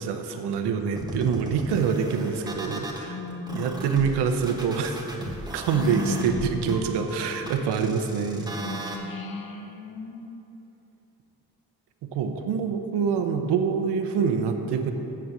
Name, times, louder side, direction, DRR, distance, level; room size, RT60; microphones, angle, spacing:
voice 1, 0.0-3.2 3.5-5.1 5.5-8.5 12.0-14.9, right 6 dB, 90° right, 6 dB, 0.8 m, -26 dB
sound 1, 1.0-3.0 3.5-9.0, right 1 dB, 10° right, 1.5 m, -37 dB
voice 2, 3.0-3.9 5.7-6.9 8.5-10.4, left 3 dB, 60° left, 4 dB, 1.2 m, -34 dB
7.3 x 7.0 x 7.6 m, 2.9 s
cardioid pair, 70°, 39 cm